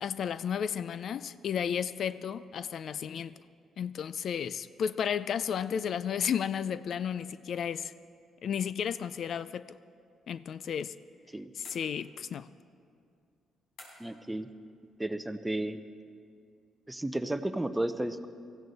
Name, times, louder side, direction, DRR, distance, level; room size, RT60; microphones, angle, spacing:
voice 1, 0.0-3.3 3.8-7.9 8.4-9.7 10.3-10.9 11.5-12.5, left 8 dB, 60° left, 0.3 m, -33 dB
sound 1, 11.6-12.4 13.8-14.3, left 2 dB, 80° left, 4.2 m, -53 dB
voice 2, 14.0-14.5 15.0-15.8 16.9-18.3, right 1 dB, 10° right, 0.7 m, -33 dB
18.5 x 14.5 x 4.1 m
cardioid pair, 90°, 0 cm